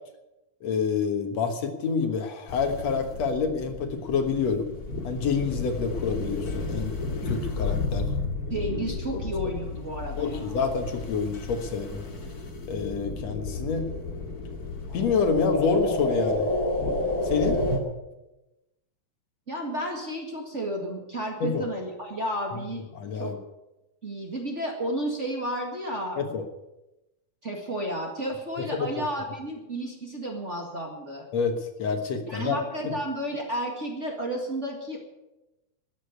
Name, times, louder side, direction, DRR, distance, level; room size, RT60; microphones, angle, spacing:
voice 1, 0.6-4.7 5.0-6.9 7.2-8.1 9.1-9.2 10.2-12.0 12.7-13.9 14.9-16.5 17.2-17.6 21.4-21.7 23.0-23.4 26.2-26.4 28.8-28.9 31.3-32.6 32.8-32.9, left 5 dB, 65° left, 6 dB, 2.4 m, -27 dB
sound 1, 2.5-17.8, left 2 dB, 35° left, 2.3 m, -31 dB
voice 2, 8.5-10.6 19.5-22.8 23.2-23.3 24.0-26.2 27.4-31.3 32.3-35.0, right 1 dB, 30° right, 0 dB, 1.8 m, -32 dB
13.5 x 9.9 x 9.3 m, 0.99 s
omnidirectional pair, 3.5 m